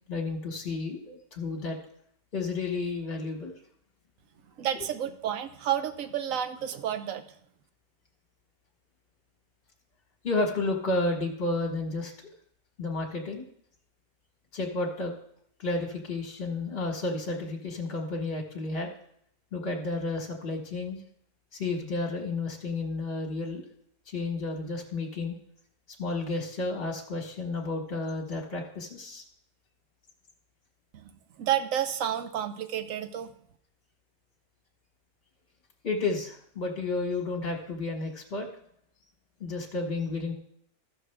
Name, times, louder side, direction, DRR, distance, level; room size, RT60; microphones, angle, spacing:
voice 1, 0.1-1.8 2.3-3.5 10.2-12.1 12.8-13.4 14.5-15.1 15.6-18.9 19.5-21.0 21.5-23.6 24.1-25.4 26.0-29.2 35.8-38.5 39.4-40.3, left 3 dB, 45° left, 1 dB, 1.4 m, -31 dB
voice 2, 4.6-7.4 30.9-31.1 31.4-33.3, right 10 dB, 65° right, 9 dB, 1.1 m, -30 dB
14.5 x 6.3 x 3.4 m, 0.68 s
omnidirectional pair, 1.6 m